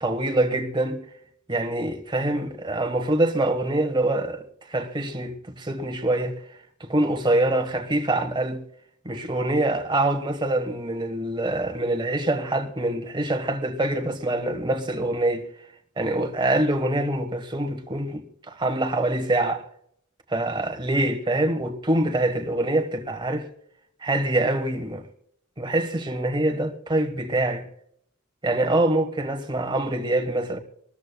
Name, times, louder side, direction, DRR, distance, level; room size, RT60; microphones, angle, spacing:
voice 1, 0.0-1.0 1.5-6.4 6.8-8.6 9.0-15.5 16.0-19.7 20.3-23.5 24.0-25.0 25.6-27.7 28.4-30.6, right 1 dB, 25° right, 1.4 m, -25 dB
25.5 x 13.5 x 2.3 m
head